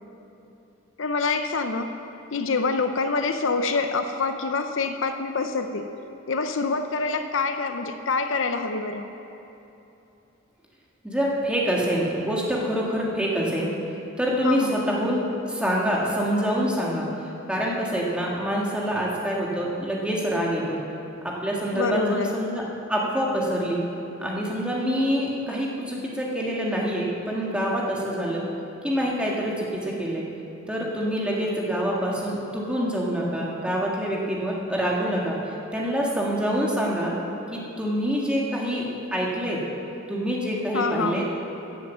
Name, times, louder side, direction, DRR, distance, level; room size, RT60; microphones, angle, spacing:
voice 1, 1.0-1.9 2.3-5.9 6.3-9.1 14.4-14.8 21.7-22.3 40.7-41.3, left 4 dB, 70° left, 7 dB, 0.7 m, -26 dB
voice 2, 11.0-13.7 14.2-15.2 15.5-17.1 17.5-20.8 21.2-22.6 22.9-23.8 24.2-28.4 28.8-30.2 30.7-37.1 37.5-38.9 39.1-39.6 40.1-41.2, equal, 5° right, -4 dB, 1.8 m, -26 dB
16.0 x 7.4 x 7.4 m, 2.9 s
head